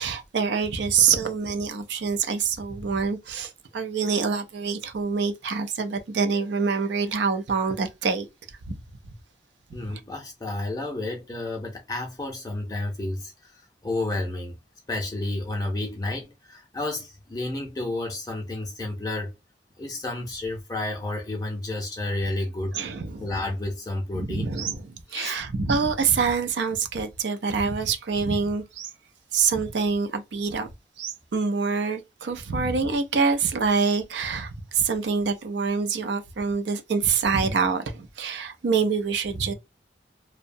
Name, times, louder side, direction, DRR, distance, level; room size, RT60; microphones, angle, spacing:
voice 1, 0.0-8.3 8.7-8.8 9.9-10.0 22.7-23.3 24.1-28.9 29.3-30.7 31.0-39.5, right 5 dB, 75° right, 0.4 m, -26 dB
voice 2, 9.7-14.6 14.9-19.3 19.8-22.8 23.2-24.6 25.1-25.4, left 2 dB, 20° left, 0.4 m, -31 dB
2.7 x 2.1 x 2.5 m
head